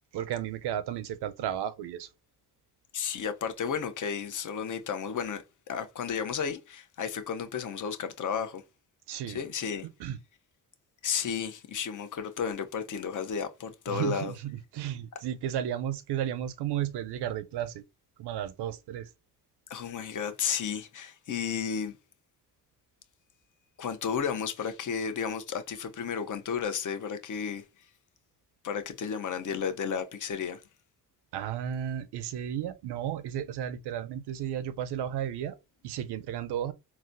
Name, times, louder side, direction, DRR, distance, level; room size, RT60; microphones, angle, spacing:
voice 1, 0.1-2.1 9.1-9.4 10.0-10.2 13.9-17.8 18.2-19.1 31.3-35.6 35.8-36.7, right 10 dB, 75° right, 0.6 m, -33 dB
voice 2, 2.9-8.6 9.3-9.9 11.0-14.3 19.7-21.9 23.8-27.6 28.6-30.6, left 7 dB, 50° left, 0.7 m, -33 dB
4.0 x 2.2 x 2.5 m
cardioid pair, 75°, 40 cm